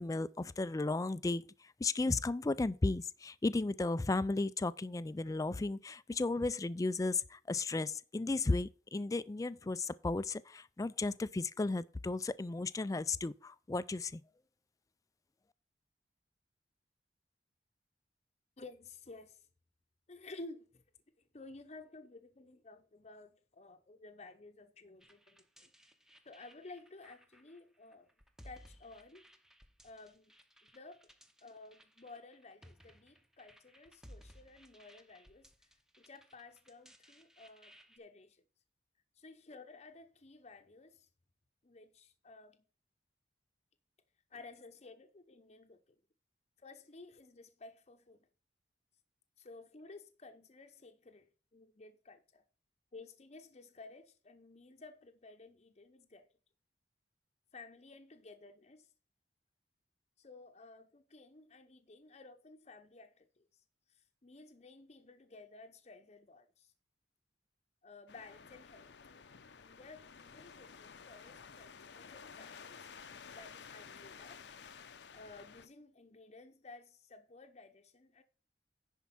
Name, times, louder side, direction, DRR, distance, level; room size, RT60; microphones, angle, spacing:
voice 1, 0.0-14.2, left 3 dB, 20° left, 0.3 m, -34 dB
voice 2, 18.6-19.5 20.1-20.8 21.2-25.7 26.2-28.1 28.4-29.2 29.8-30.3 30.6-31.1 31.4-35.7 36.0-38.4 39.2-41.1 41.6-42.6 44.3-45.8 46.6-48.3 49.4-52.4 52.9-56.3 57.5-58.9 60.2-66.7 67.8-68.9 69.6-72.9 73.3-74.4 75.1-78.2, left 3 dB, 40° left, 0.7 m, -54 dB
sound 1, 25.0-38.0, equal, 5° right, 0.8 m, -61 dB
sound 2, 68.1-75.7, left 6 dB, 75° left, 0.7 m, -53 dB
10.5 x 4.5 x 5.7 m
head